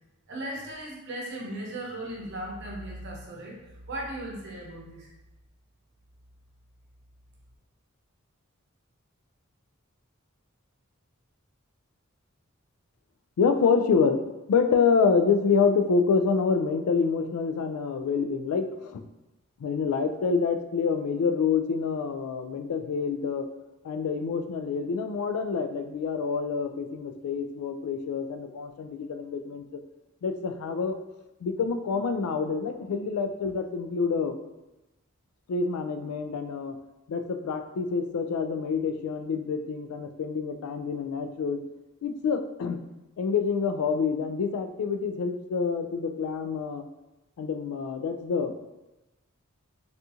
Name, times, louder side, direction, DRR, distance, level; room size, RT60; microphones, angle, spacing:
voice 1, 0.3-3.6 3.9-5.1, right 1 dB, 55° right, -2 dB, 0.8 m, -37 dB
voice 2, 13.4-19.0 19.6-23.5 23.8-29.8 30.2-31.0 31.4-34.4 35.5-36.8 37.1-41.6 42.0-42.8 43.2-46.8 47.4-48.5, left 5 dB, 90° left, 8 dB, 0.3 m, -27 dB
3.6 x 2.4 x 2.7 m, 0.98 s
head